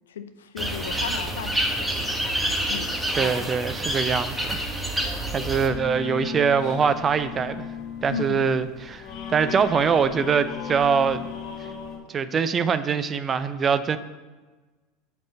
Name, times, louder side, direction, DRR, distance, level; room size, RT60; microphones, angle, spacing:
voice 1, 0.1-1.9 2.7-2.9 8.1-8.5, left 7 dB, 75° left, 9 dB, 0.6 m, -34 dB
sound 1, 0.6-5.7, right 1 dB, 5° right, 1.4 m, -27 dB
voice 2, 3.2-4.6 4.9-7.7 8.0-9.0 9.3-11.2 12.1-14.0, right 6 dB, 30° right, 12 dB, 0.6 m, -23 dB
sound 2, 5.6-12.0, left 7 dB, 50° left, 2.3 m, -36 dB
7.7 x 5.4 x 6.2 m, 1.3 s
hypercardioid pair, 80°, 0 cm